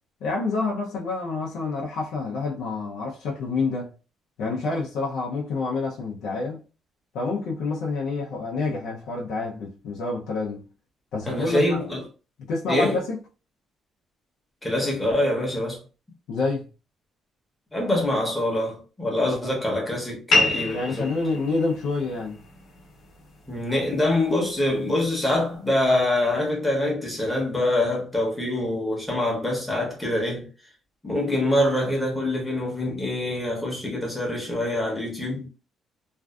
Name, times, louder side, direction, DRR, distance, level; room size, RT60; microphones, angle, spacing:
voice 1, 0.2-3.9 4.4-6.6 7.1-10.6 11.1-11.9 12.5-13.2 16.3-16.7 20.7-22.4, left 3 dB, 85° left, 0.5 m, -28 dB
voice 2, 11.3-12.0 12.7-13.0 14.6-15.8 17.7-21.1 23.5-30.5 31.0-35.5, left 1 dB, 5° left, 0.8 m, -25 dB
sound 1, 20.3-25.3, left 2 dB, 50° left, 0.8 m, -29 dB
2.5 x 2.3 x 2.2 m
cardioid pair, 155°, 0 cm